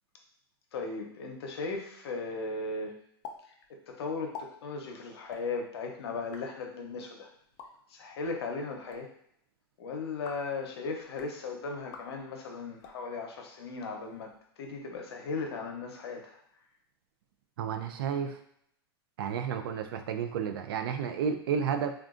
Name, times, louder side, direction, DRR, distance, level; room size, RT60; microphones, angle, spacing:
voice 1, 0.7-2.9 3.7-7.3 7.9-9.1 9.8-16.4, left 4 dB, 80° left, 2 dB, 0.7 m, -37 dB
sound 1, 3.2-3.4 3.6-3.7 4.2-4.5 5.2-5.4 6.1-6.4 7.4-7.7 8.7-9.0 10.1-10.5 11.0-11.3 11.8-12.1 12.7-13.0 13.7-14.4, left 6 dB, 40° left, 0.4 m, -47 dB
voice 2, 17.6-18.4 19.2-21.9, right 7 dB, 65° right, 7 dB, 0.4 m, -31 dB
3.7 x 2.3 x 2.4 m, 0.70 s
supercardioid pair, 155°, 13 cm